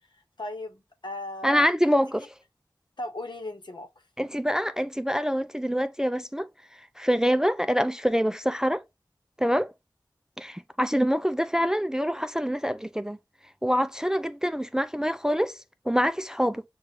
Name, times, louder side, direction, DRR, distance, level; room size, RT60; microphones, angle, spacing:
voice 1, 0.4-2.0 3.0-3.9, left 1 dB, 70° left, 1.0 m, -37 dB
voice 2, 1.4-2.2 4.2-6.5 7.0-8.8 9.4-9.7 10.4-13.2 13.6-15.6 15.9-16.6, equal, 5° right, 0.3 m, -25 dB
6.7 x 2.4 x 2.8 m
wide cardioid pair, 50°, 8 cm